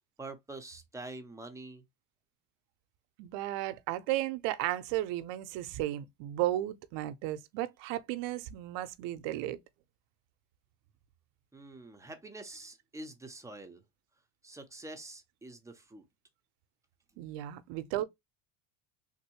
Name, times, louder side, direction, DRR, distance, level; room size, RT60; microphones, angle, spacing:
voice 1, 0.2-1.8 11.5-13.8 14.4-16.0, right 2 dB, 5° right, 0.5 m, -46 dB
voice 2, 3.2-9.6 17.2-18.0, right 14 dB, 70° right, 0.6 m, -34 dB
3.5 x 2.6 x 2.9 m
cardioid pair, 125°, 44 cm